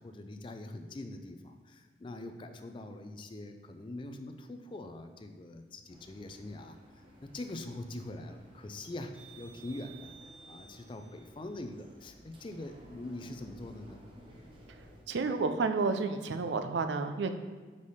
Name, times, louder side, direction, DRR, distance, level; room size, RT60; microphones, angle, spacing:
voice 1, 0.0-14.0, left 2 dB, 30° left, 7 dB, 0.4 m, -43 dB
sound 1, 5.9-15.0, right 1 dB, 30° right, 0.9 m, -55 dB
voice 2, 15.1-17.4, right 4 dB, 80° right, 8 dB, 0.4 m, -30 dB
5.4 x 4.9 x 4.1 m, 1.4 s
head